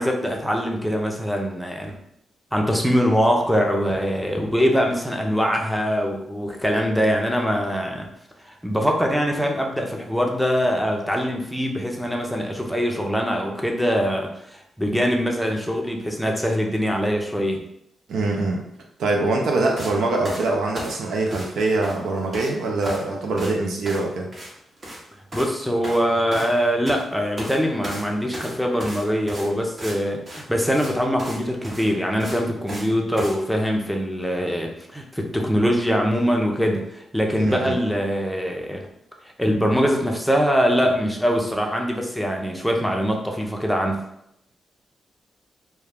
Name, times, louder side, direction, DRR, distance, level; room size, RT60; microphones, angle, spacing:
voice 1, 0.0-2.0 2.5-8.1 8.4-17.6 25.3-38.8 39.4-44.0, equal, ahead, 1 dB, 0.6 m, -23 dB
voice 2, 18.1-18.6 19.0-24.3 37.3-37.8, right 2 dB, 80° right, 0 dB, 0.5 m, -23 dB
sound 1, 19.8-19.9 20.2-21.6 21.8-22.5 22.8-23.1 23.4-23.5 23.9-24.1 24.3-24.5 24.8-25.0 25.3-25.5 25.8-27.0 27.4-27.6 27.8-30.0 30.3-30.4 30.7-30.9 31.2-31.4 31.6-32.9 33.2-33.4, equal, 45° right, 1.0 m, -35 dB
2.2 x 2.2 x 3.4 m, 0.77 s
supercardioid pair, 50°, 0 cm